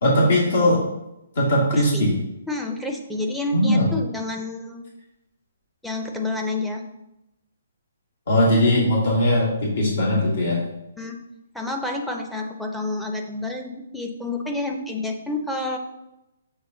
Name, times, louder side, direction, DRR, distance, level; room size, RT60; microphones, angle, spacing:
voice 1, 0.0-0.8 1.4-2.1 3.5-3.9 8.3-10.6, left 1 dB, 70° left, -5 dB, 2.3 m, -19 dB
voice 2, 1.7-2.1 2.5-4.8 5.8-6.8 11.0-11.2 11.5-15.8, left 2 dB, ahead, 0 dB, 0.6 m, -29 dB
8.0 x 3.3 x 3.9 m, 0.91 s
hypercardioid pair, 160°, 0 cm